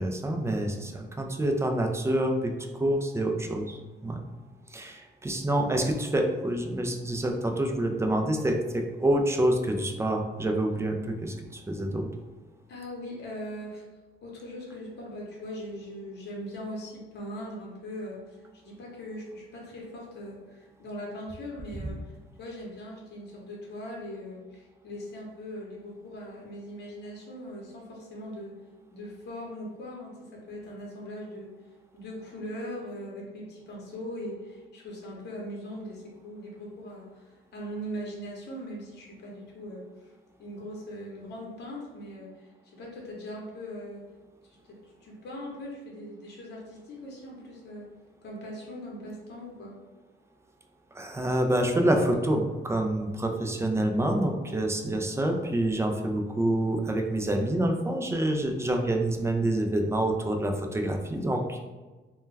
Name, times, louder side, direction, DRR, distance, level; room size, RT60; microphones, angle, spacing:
voice 1, 0.0-2.5 2.8-4.2 4.7-12.1 50.9-61.6, right 1 dB, 15° right, 4 dB, 0.3 m, -27 dB
voice 2, 12.7-13.8 14.2-22.1 22.4-28.6 28.9-31.6 31.9-40.1 40.4-44.1 44.4-47.9 48.2-49.8, equal, 55° left, -3 dB, 0.8 m, -40 dB
2.2 x 2.2 x 3.2 m, 1.3 s
cardioid pair, 90°, 20 cm